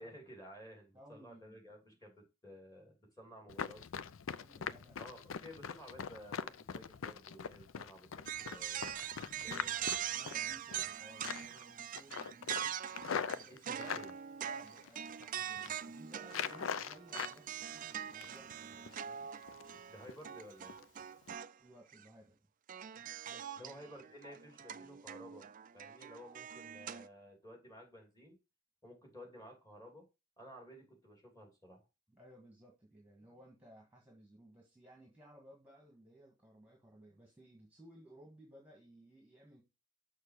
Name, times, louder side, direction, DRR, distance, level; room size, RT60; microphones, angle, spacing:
voice 1, 0.0-3.8 5.0-10.0 13.5-14.1 19.9-20.7 23.6-25.5 25.7-28.4 28.8-30.1 30.4-31.8, equal, 15° left, 2.9 m, -54 dB
voice 2, 0.9-1.7 4.3-5.0 10.0-12.8 13.2-14.0 14.4-19.3 21.6-22.5 23.0-23.9 32.1-39.6, right 1 dB, 5° right, 1.7 m, -59 dB
Run, 3.5-10.9 11.2-11.6 11.9-14.1 14.7-15.2 15.5-15.8 16.3-17.4 17.7-18.5 18.9-19.0 19.4-19.8 20.1-20.2 20.7-20.8 21.2-21.3, left 7 dB, 65° left, 0.5 m, -42 dB
sound 1, 8.3-21.5 21.9-22.0 22.7-27.1, right 9 dB, 40° right, 0.4 m, -43 dB
6.5 x 5.9 x 4.8 m
head